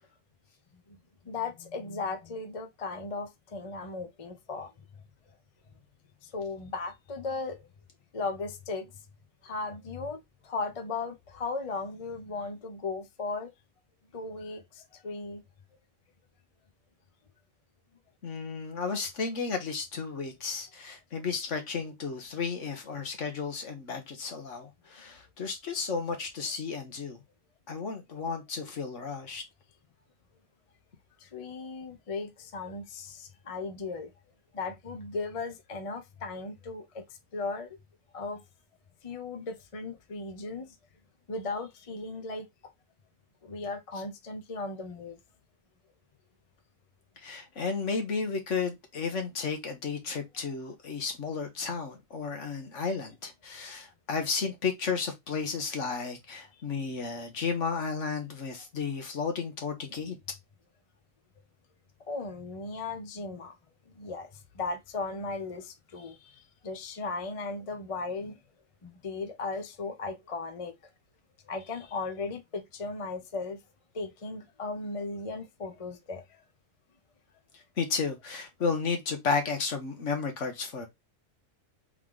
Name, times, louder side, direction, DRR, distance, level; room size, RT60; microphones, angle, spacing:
voice 1, 1.2-4.7 6.2-7.7 8.1-8.9 9.4-13.5 14.1-15.4 31.2-34.1 34.5-37.0 37.3-37.7 38.1-38.4 39.0-40.8 41.3-42.5 43.4-45.2 62.1-63.6 64.0-64.3 64.5-68.4 68.8-70.7 71.5-73.6 73.9-76.4, left 3 dB, 35° left, 0.6 m, -36 dB
voice 2, 18.2-27.2 27.7-29.4 47.2-60.2 77.8-80.9, left 5 dB, 65° left, 1.5 m, -33 dB
3.8 x 3.2 x 3.6 m
omnidirectional pair, 1.4 m